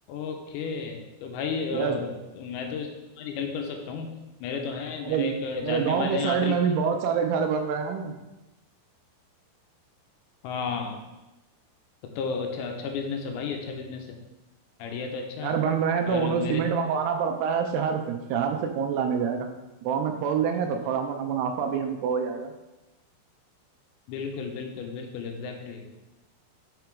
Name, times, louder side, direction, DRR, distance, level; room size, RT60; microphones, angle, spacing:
voice 1, 0.1-4.1 4.4-6.6 10.4-11.0 12.0-14.2 14.8-15.5 16.1-16.6 24.1-25.9, left 5 dB, 80° left, 3 dB, 2.8 m, -33 dB
voice 2, 1.7-2.0 5.0-5.3 5.6-8.1 15.4-19.5 19.8-22.5, right 6 dB, 85° right, 4 dB, 2.3 m, -26 dB
6.5 x 5.8 x 4.6 m, 1.0 s
omnidirectional pair, 5.5 m